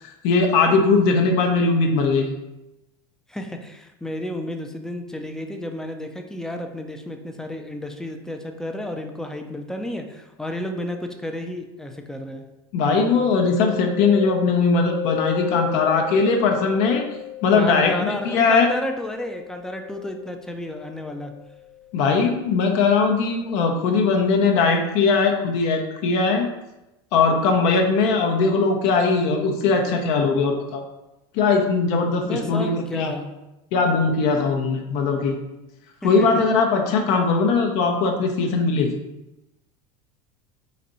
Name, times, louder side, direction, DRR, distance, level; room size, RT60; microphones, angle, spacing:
voice 1, 0.0-2.3 12.7-17.0 17.4-18.7 21.9-26.5 27.1-30.8 31.3-33.1 33.7-35.4 36.0-39.0, left 4 dB, 60° left, 3 dB, 0.6 m, -20 dB
voice 2, 3.3-12.4 17.5-21.3 32.2-33.3 36.0-36.3, left 1 dB, 5° left, 4 dB, 0.4 m, -32 dB
Mallet percussion, 13.1-22.7, left 12 dB, 35° left, 1.0 m, -35 dB
4.1 x 2.6 x 4.1 m, 0.95 s
supercardioid pair, 125°, 12 cm